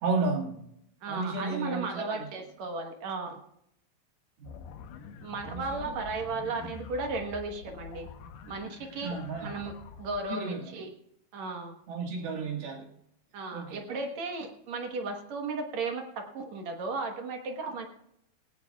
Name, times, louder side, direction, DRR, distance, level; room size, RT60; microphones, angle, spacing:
voice 1, 0.0-0.6 1.1-2.3 4.4-4.6 5.5-5.6 9.0-9.5 10.3-10.6 11.9-12.9 13.5-13.8, right 3 dB, 75° right, -2 dB, 3.9 m, -32 dB
voice 2, 1.0-3.4 5.2-8.1 8.5-9.7 10.0-10.9 11.3-11.8 13.3-17.9, right 3 dB, 60° right, 4 dB, 2.1 m, -35 dB
sound 1, 4.4-10.2, left 6 dB, 85° left, 2.9 m, -46 dB
18.5 x 17.5 x 2.4 m, 0.75 s
omnidirectional pair, 4.5 m